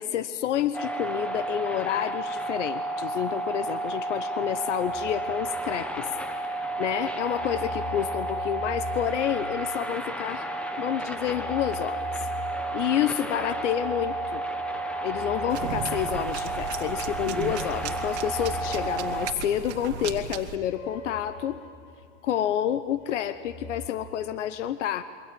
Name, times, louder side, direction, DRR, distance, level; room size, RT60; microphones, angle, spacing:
voice 1, 0.0-6.1 6.4-10.5 10.8-12.1 12.7-14.4 15.0-21.6 22.2-25.0, left 10 dB, 75° left, 12 dB, 1.1 m, -29 dB
sound 1, 0.7-19.3, right 2 dB, 5° left, 0.9 m, -32 dB
sound 2, 4.8-6.5 6.8-10.3 11.2-22.5 22.9-23.9, left 3 dB, 50° left, 3.5 m, -42 dB
sound 3, 15.5-20.6, right 9 dB, 65° right, 2.1 m, -36 dB
27.5 x 24.0 x 7.7 m, 2.1 s
supercardioid pair, 155°, 36 cm